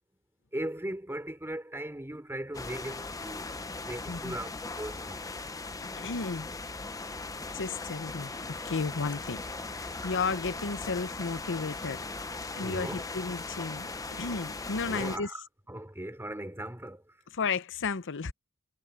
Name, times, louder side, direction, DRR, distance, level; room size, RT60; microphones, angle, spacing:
voice 1, 0.5-5.2 12.6-13.0 14.8-17.0, right 1 dB, 10° right, 4.5 m, -38 dB
sound 1, 2.5-15.2, left 3 dB, 15° left, 0.7 m, -39 dB
voice 2, 6.0-6.5 7.5-9.4 9.7-12.0 12.5-15.3 17.3-18.3, left 4 dB, 60° left, 0.8 m, -33 dB
head